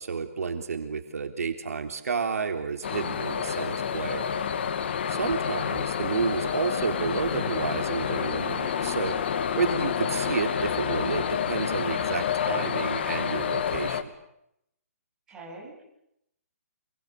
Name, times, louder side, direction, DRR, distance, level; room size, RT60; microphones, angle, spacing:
voice 1, 0.0-4.3 5.1-9.2 9.6-14.1, right 5 dB, 75° right, 5 dB, 3.7 m, -30 dB
sound 1, 2.8-14.0, left 7 dB, 45° left, 2.0 m, -29 dB
voice 2, 15.3-15.8, right 2 dB, 10° right, -3 dB, 7.7 m, -45 dB
28.5 x 24.0 x 8.4 m, 0.79 s
hypercardioid pair, 170°, 8 cm